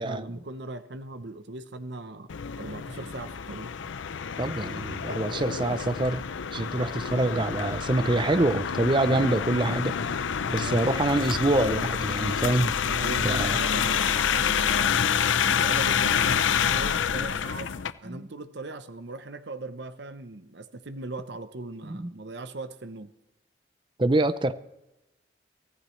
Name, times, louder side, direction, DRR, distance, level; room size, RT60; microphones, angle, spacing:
voice 1, 0.0-2.3 2.5-3.7 10.6-10.9 12.8-15.1 15.5-17.7 18.0-23.1, right 2 dB, 65° right, 10 dB, 0.8 m, -39 dB
sound 1, 2.3-17.9, left 7 dB, 80° left, 0.5 m, -27 dB
voice 2, 4.4-10.0 10.5-12.8 13.2-13.6 18.0-18.3 21.8-22.1 24.0-24.5, right 2 dB, 25° right, 13 dB, 0.6 m, -26 dB
24.0 x 15.0 x 3.2 m, 0.97 s
head